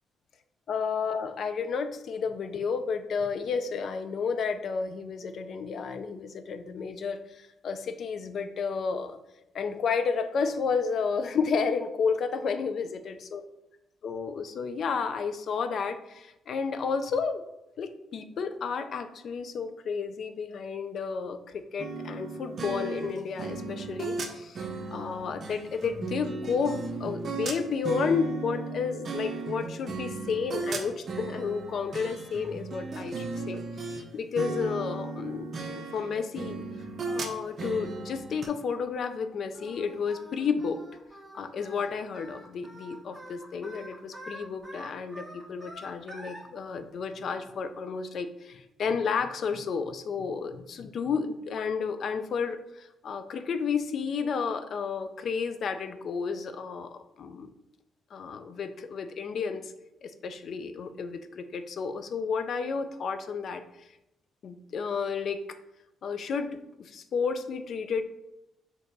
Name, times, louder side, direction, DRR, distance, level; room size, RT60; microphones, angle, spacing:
voice 1, 0.7-9.2 9.5-13.4 14.0-17.4 17.8-36.6 37.1-40.8 41.3-57.5 58.1-59.7 60.0-63.9 64.4-65.4 66.0-66.5 66.8-68.0, left 5 dB, 60° left, 9 dB, 0.4 m, -32 dB
sound 1, 21.8-34.0 34.4-38.5, right 3 dB, 50° right, 0.6 m, -36 dB
Singing, 39.5-46.4, equal, 5° right, 1.2 m, -46 dB
6.5 x 2.8 x 2.7 m, 0.89 s
cardioid pair, 90°, 0 cm